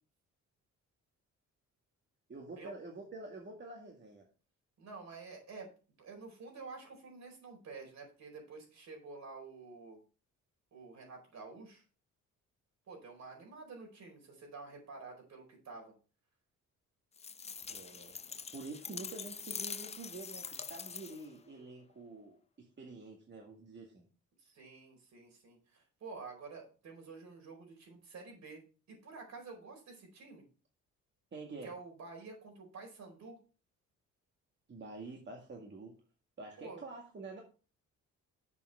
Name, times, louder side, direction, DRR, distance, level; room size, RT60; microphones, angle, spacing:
voice 1, 2.3-4.3 17.7-18.2 18.5-22.4 22.8-24.1 31.3-31.7 34.7-35.9 36.4-37.4, right 3 dB, 35° right, 0 dB, 2.0 m, -47 dB
voice 2, 4.8-5.7 6.0-10.0 10.7-11.8 12.9-15.9 24.4-30.5 31.6-33.4 36.6-36.8, right 4 dB, 65° right, 2 dB, 4.6 m, -49 dB
sound 1, 17.2-21.4, left 6 dB, 20° left, 0.4 m, -44 dB
7.2 x 5.7 x 5.5 m, 0.36 s
cardioid pair, 90°, 30 cm